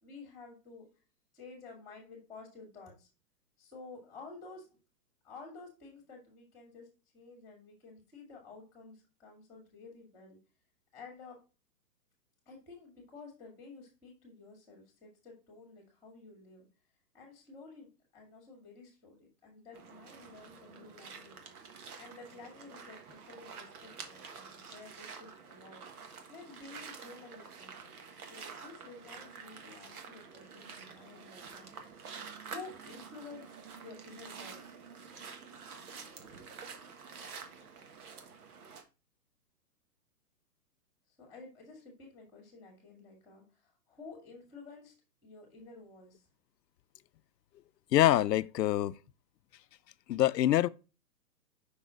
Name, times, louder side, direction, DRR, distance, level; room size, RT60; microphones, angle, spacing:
voice 1, 0.0-0.9 1.3-3.1 3.6-4.7 5.2-6.9 7.1-10.4 10.9-11.4 12.5-16.7 17.1-17.9 18.1-21.4 22.0-25.8 26.3-31.7 32.4-34.7 41.2-44.9 45.2-46.2, left 4 dB, 5° left, 2.0 m, -52 dB
sound 1, 19.7-38.8, right 5 dB, 60° right, 1.4 m, -48 dB
voice 2, 47.9-48.9 50.1-50.7, left 13 dB, 80° left, 0.6 m, -25 dB
5.5 x 4.0 x 4.9 m
hypercardioid pair, 150°, 49 cm